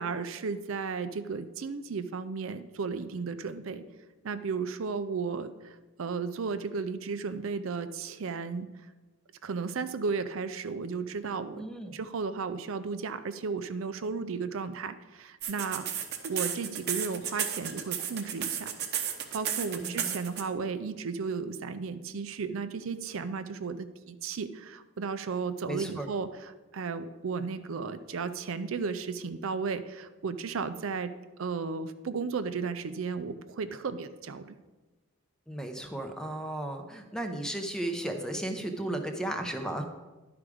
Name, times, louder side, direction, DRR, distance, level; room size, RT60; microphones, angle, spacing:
voice 1, 0.0-3.8 4.2-8.7 9.4-11.7 11.9-15.9 16.2-31.1 31.4-34.6, right 5 dB, 75° right, 11 dB, 0.5 m, -34 dB
voice 2, 11.5-11.9 19.8-20.2 25.7-26.1 35.5-39.8, right 1 dB, 5° left, 5 dB, 0.6 m, -35 dB
sound 1, 15.4-20.4, right 9 dB, 50° right, 0.8 m, -32 dB
11.0 x 4.9 x 4.9 m, 1.2 s
head